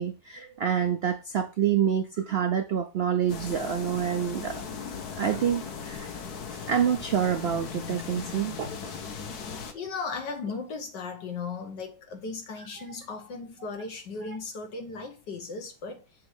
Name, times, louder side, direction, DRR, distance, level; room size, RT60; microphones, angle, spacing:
voice 1, 0.0-4.6 5.2-6.1 6.5-8.7, right 8 dB, 75° right, 0.5 m, -27 dB
sound 1, 3.3-9.7, left 6 dB, 65° left, 1.4 m, -38 dB
voice 2, 9.7-16.0, left 4 dB, 85° left, 1.9 m, -36 dB
7.1 x 3.2 x 4.8 m
omnidirectional pair, 1.8 m